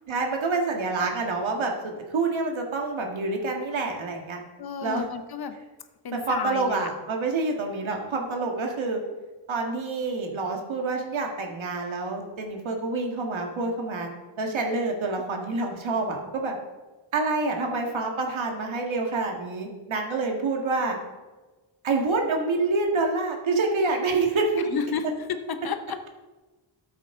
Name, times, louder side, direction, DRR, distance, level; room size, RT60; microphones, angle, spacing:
voice 1, 0.1-4.4 4.8-5.1 6.1-9.0 9.5-14.1 14.4-16.6 17.1-21.0 21.8-24.7, right 3 dB, 70° right, 2 dB, 1.9 m, -27 dB
voice 2, 4.6-5.6 6.0-6.9 24.7-26.1, left 6 dB, 50° left, 9 dB, 0.8 m, -32 dB
13.0 x 8.3 x 3.8 m, 1.2 s
wide cardioid pair, 180°, 49 cm